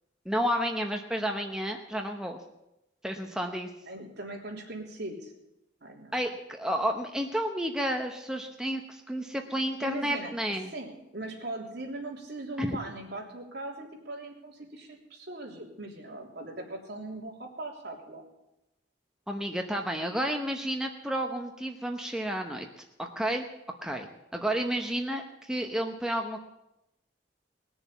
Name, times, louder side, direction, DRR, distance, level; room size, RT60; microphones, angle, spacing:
voice 1, 0.2-2.4 3.0-3.7 6.1-10.7 12.6-12.8 19.3-22.7 23.0-23.4 23.8-24.1 24.3-26.4, equal, 5° right, 3 dB, 0.9 m, -31 dB
voice 2, 3.9-5.3 5.8-6.2 9.8-10.3 10.7-18.3, right 2 dB, 65° right, -1 dB, 3.3 m, -40 dB
19.5 x 7.0 x 8.4 m, 0.91 s
head